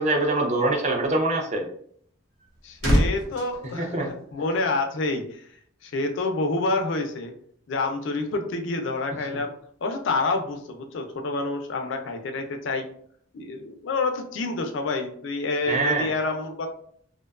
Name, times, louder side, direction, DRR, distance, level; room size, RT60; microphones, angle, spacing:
voice 1, 0.0-1.7 3.8-4.1 15.7-16.1, right 2 dB, 35° right, 1 dB, 0.4 m, -24 dB
sound 1, 2.1-4.8 5.0-5.3, equal, 80° right, 0.8 m, -27 dB
voice 2, 2.6-5.5 5.8-7.3 7.7-9.5 9.8-12.9 13.3-16.7, left 3 dB, 65° left, 5 dB, 0.4 m, -28 dB
2.5 x 2.1 x 2.3 m, 0.62 s
head